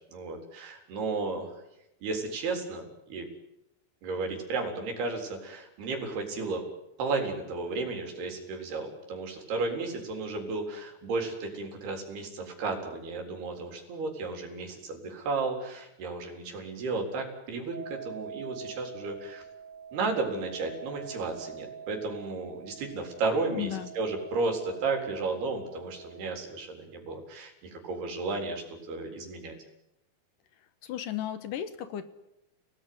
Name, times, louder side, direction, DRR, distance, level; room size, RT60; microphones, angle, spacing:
voice 1, 0.1-1.5 2.0-3.3 4.0-6.6 7.0-19.4 19.9-29.6, right 3 dB, 85° right, 3 dB, 5.9 m, -33 dB
sound 1, 17.7-26.3, right 7 dB, 25° left, 2.1 m, -45 dB
voice 2, 23.5-23.9 30.8-32.0, left 11 dB, 70° left, 11 dB, 2.5 m, -34 dB
29.0 x 19.0 x 9.5 m, 0.90 s
omnidirectional pair, 4.4 m